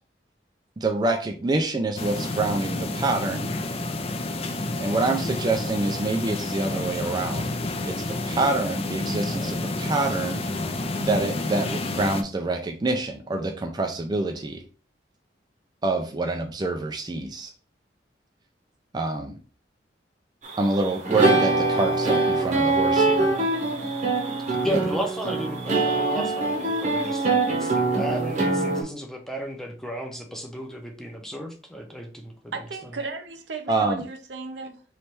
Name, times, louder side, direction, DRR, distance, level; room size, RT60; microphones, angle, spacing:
voice 1, 0.8-3.5 4.8-7.5 7.9-10.4 11.0-14.6 15.8-17.5 18.9-19.4 20.6-23.3 24.6-24.8 33.7-34.0, right 2 dB, 25° right, 0.4 m, -26 dB
sound 1, 2.0-12.2, left 2 dB, 35° left, 0.5 m, -30 dB
sound 2, 20.4-28.8, right 3 dB, 45° right, 1.0 m, -23 dB
voice 2, 24.6-32.5, right 1 dB, 5° left, 0.7 m, -34 dB
voice 3, 32.5-34.8, right 3 dB, 85° right, 0.7 m, -35 dB
3.2 x 3.1 x 4.5 m
head